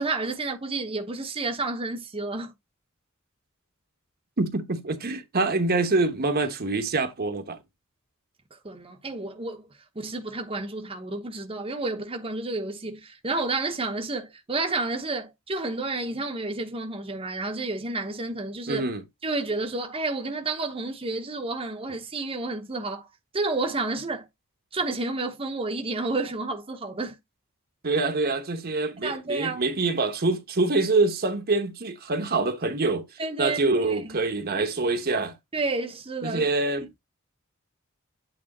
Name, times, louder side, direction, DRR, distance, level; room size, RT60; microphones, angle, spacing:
voice 1, 0.0-2.5 8.6-9.7 9.9-18.9 19.2-23.1 23.3-24.3 24.7-27.2 29.0-29.6 33.2-34.2 35.5-36.4 36.8-36.9, right 3 dB, 25° right, 1.0 m, -30 dB
voice 2, 4.4-7.6 18.7-19.0 27.8-33.0 33.4-35.3 36.2-37.0, right 3 dB, 45° right, 1.1 m, -25 dB
8.9 x 3.4 x 4.1 m
head